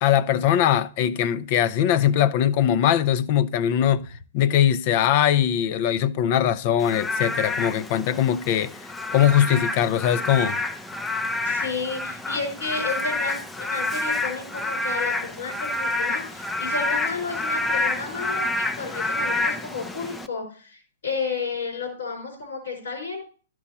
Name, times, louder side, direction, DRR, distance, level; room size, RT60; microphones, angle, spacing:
voice 1, 0.0-4.1 4.3-8.7 9.1-10.6, left 10 dB, 45° left, 0.7 m, -21 dB
Frog / Rain, 6.8-20.3, left 2 dB, 5° left, 0.6 m, -28 dB
voice 2, 11.4-23.2, left 4 dB, 75° left, 4.9 m, -32 dB
12.0 x 6.2 x 4.3 m
hypercardioid pair, 130°, 0 cm